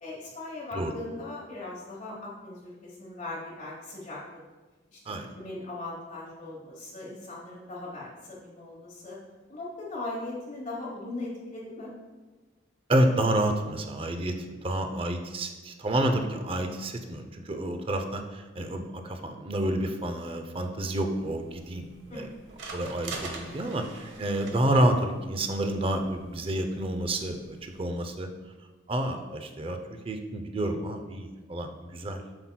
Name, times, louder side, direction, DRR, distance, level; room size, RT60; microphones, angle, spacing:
voice 1, 0.0-4.2 4.9-9.2 9.5-11.9 22.1-22.3, left 2 dB, 40° left, -5 dB, 1.1 m, -39 dB
voice 2, 12.9-14.4 14.6-22.3 22.7-28.3 28.9-32.4, right 1 dB, 30° right, 6 dB, 0.5 m, -29 dB
sound 1, 21.0-27.8, right 3 dB, 70° right, 0.9 m, -45 dB
7.8 x 5.7 x 2.2 m, 1.2 s
head